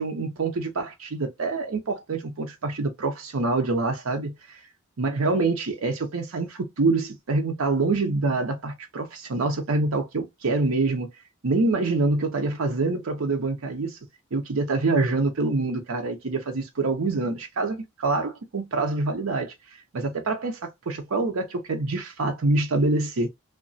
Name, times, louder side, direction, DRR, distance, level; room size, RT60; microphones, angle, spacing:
voice 1, 0.0-4.3 5.0-11.1 11.4-14.0 14.3-19.5 19.9-23.3, right 3 dB, 85° right, 0.6 m, -26 dB
2.8 x 2.2 x 2.6 m
head